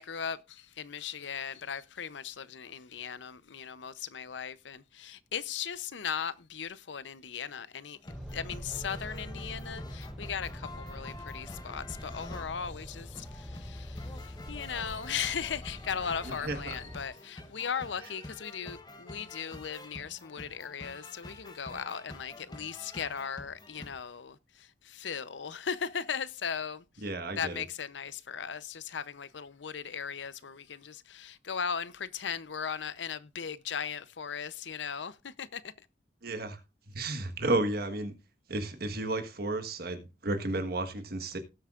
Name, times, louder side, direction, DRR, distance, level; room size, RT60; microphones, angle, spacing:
voice 1, 0.0-26.8 27.4-35.9, left 7 dB, 85° left, 0.7 m, -38 dB
sound 1, 8.0-12.6 13.1-24.0, left 2 dB, 25° left, 1.1 m, -48 dB
sound 2, 8.1-17.1, equal, ahead, 0.7 m, -44 dB
voice 2, 16.2-16.8 27.0-27.6 36.2-36.6 36.9-38.1 38.5-41.4, right 2 dB, 60° right, 1.4 m, -33 dB
18.5 x 7.9 x 2.5 m
head